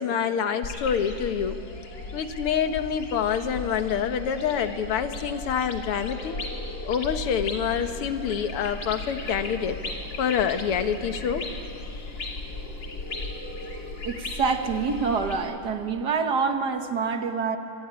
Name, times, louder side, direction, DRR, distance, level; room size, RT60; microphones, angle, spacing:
voice 1, 0.0-1.6 2.1-6.4 6.8-9.8 10.2-11.5, left 7 dB, 80° left, 8 dB, 2.1 m, -26 dB
sound 1, 0.6-15.4, left 3 dB, 55° left, 3.2 m, -36 dB
sound 2, 7.5-15.2, right 3 dB, 10° right, 5.2 m, -49 dB
voice 2, 14.0-17.6, right 5 dB, 50° right, 6 dB, 1.8 m, -26 dB
26.0 x 23.5 x 9.8 m, 3.0 s
omnidirectional pair, 2.4 m